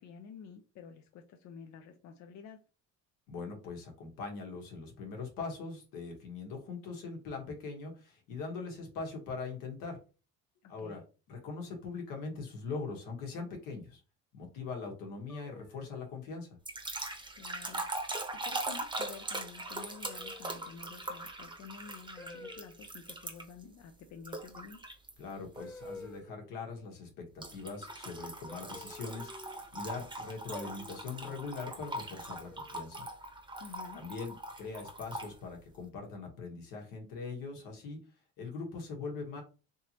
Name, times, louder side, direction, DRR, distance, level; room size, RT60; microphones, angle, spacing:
voice 1, 0.0-2.6 10.6-11.1 17.3-24.8 33.6-34.0, left 6 dB, 55° left, 5 dB, 0.6 m, -50 dB
voice 2, 3.3-10.0 10.7-11.0 11.3-14.0 14.3-16.5 25.2-33.1 33.9-38.0 38.4-39.4, left 4 dB, 80° left, 2 dB, 1.4 m, -41 dB
sound 1, 15.3-16.2 17.4-17.8 18.3-18.6 20.0-20.7 22.2-22.8 24.7-24.8 25.6-26.5 28.5-29.6 30.5-31.2 32.4-33.0, left 2 dB, 5° left, 0.4 m, -50 dB
sound 2, 16.6-23.6 24.2-25.1 25.6-25.9 27.4-35.3, right 2 dB, 15° right, 0.9 m, -41 dB
3.4 x 2.9 x 2.8 m, 0.34 s
supercardioid pair, 100°, 33 cm